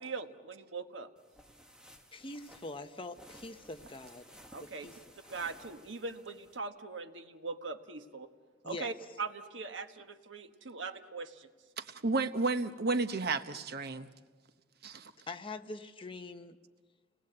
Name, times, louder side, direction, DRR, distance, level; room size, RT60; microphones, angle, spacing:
voice 1, 0.0-1.1 4.5-4.9 5.3-8.3 8.6-11.5, right 4 dB, 75° right, 7 dB, 1.4 m, -41 dB
sound 1, 1.2-6.6, equal, 5° right, 1.5 m, -57 dB
voice 2, 2.1-4.3 4.6-4.9 8.6-8.9 15.3-16.6, left 2 dB, 30° left, 7 dB, 1.0 m, -44 dB
voice 3, 11.8-14.1 14.8-15.1, right 3 dB, 60° right, 10 dB, 1.0 m, -32 dB
30.0 x 20.0 x 7.9 m, 1.5 s
head